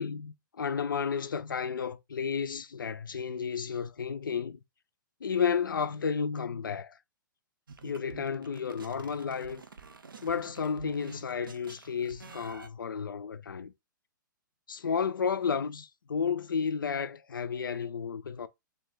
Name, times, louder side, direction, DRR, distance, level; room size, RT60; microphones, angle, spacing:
voice 1, 0.0-4.6 5.2-7.0 7.8-9.6 10.2-13.7 14.7-18.5, left 6 dB, 80° left, 0.4 m, -32 dB
sound 1, 7.7-12.7, right 5 dB, 90° right, 0.4 m, -49 dB
2.6 x 2.2 x 3.4 m
figure-of-eight pair, 115°, 11 cm